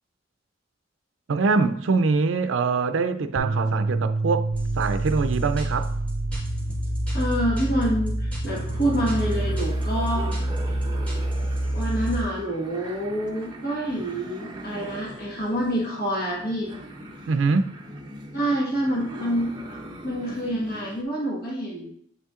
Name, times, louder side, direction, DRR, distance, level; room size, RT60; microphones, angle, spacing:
voice 1, 1.3-4.5 4.8-5.9 17.3-17.8, right 4 dB, 80° right, 0.4 m, -23 dB
sound 1, 3.4-9.6, right 3 dB, 45° right, 1.1 m, -30 dB
sound 2, 4.5-12.2, right 1 dB, 10° left, 1.8 m, -28 dB
voice 2, 7.1-10.3 10.7-10.8 11.7-16.7 18.3-19.5 20.0-21.9, equal, 55° left, 1.5 m, -27 dB
sound 3, 8.5-21.0, right 1 dB, 25° right, 0.8 m, -41 dB
8.1 x 5.5 x 2.4 m
head